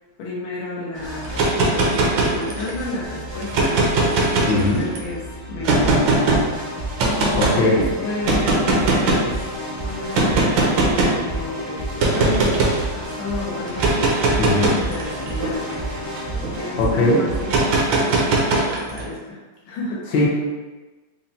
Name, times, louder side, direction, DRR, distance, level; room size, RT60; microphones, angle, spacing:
voice 1, 0.2-3.8 4.3-6.0 7.1-9.4 9.8-15.8 16.5-17.5 18.0-19.4 19.7-20.0, left 2 dB, 90° left, -6 dB, 1.7 m, -31 dB
sound 1, 0.9-17.7, right 1 dB, 35° right, 0.6 m, -31 dB
sound 2, 1.2-2.8 3.4-5.0 5.6-6.4 7.0-7.6 8.2-9.3 10.1-11.2 12.0-12.8 13.7-16.5 17.5-19.0, right 2 dB, 75° right, 1.3 m, -20 dB
voice 2, 4.5-4.8 7.4-7.8 14.4-14.8 16.8-17.2 20.1-20.3, left 2 dB, 70° left, -4 dB, 1.4 m, -19 dB
5.5 x 2.0 x 2.7 m, 1.3 s
omnidirectional pair, 2.2 m